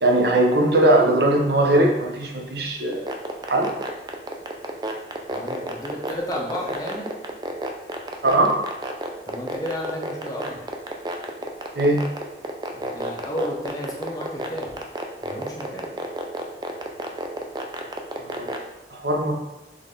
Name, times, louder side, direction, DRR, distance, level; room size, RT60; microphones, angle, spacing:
voice 1, 0.0-3.1 3.5-3.7 8.2-8.5 11.8-12.0 18.3-18.5 18.9-19.3, right 1 dB, 65° right, 1 dB, 0.7 m, -19 dB
sound 1, 2.9-18.6, right 1 dB, 25° right, 0.3 m, -29 dB
voice 2, 5.3-7.1 9.3-10.7 12.7-14.7 15.2-15.9, left 1 dB, 20° left, -2 dB, 0.7 m, -32 dB
4.0 x 3.2 x 3.8 m, 0.98 s
head